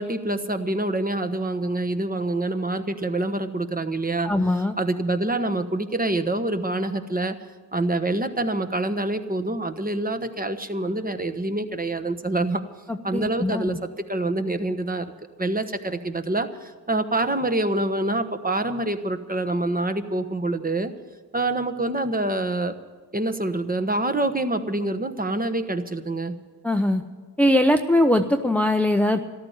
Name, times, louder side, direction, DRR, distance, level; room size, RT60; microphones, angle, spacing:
voice 1, 0.0-4.3 4.8-7.4 7.7-12.6 13.0-13.8 14.1-15.1 15.4-20.9 21.3-22.7 23.1-26.4, right 2 dB, 20° right, 8 dB, 1.1 m, -26 dB
voice 2, 4.2-4.8 12.9-13.8 26.6-27.0 27.4-29.2, left 1 dB, 5° left, 6 dB, 0.7 m, -21 dB
13.5 x 12.0 x 8.0 m, 1.4 s
cardioid pair, 70°, 41 cm